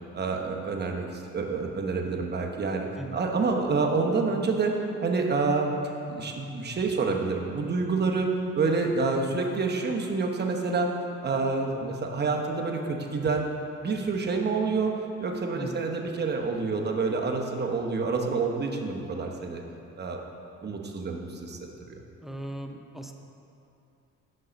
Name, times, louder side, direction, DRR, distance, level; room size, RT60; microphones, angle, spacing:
voice 1, 0.1-2.9 3.1-5.7 6.1-8.3 8.6-10.9 11.2-13.4 13.8-14.9 15.2-19.6 20.0-20.2 20.6-21.6 21.8-22.0, right 4 dB, 35° right, 2 dB, 0.9 m, -28 dB
voice 2, 22.2-23.1, right 1 dB, ahead, 4 dB, 0.5 m, -38 dB
6.5 x 5.5 x 5.1 m, 2.8 s
cardioid pair, 90°, 30 cm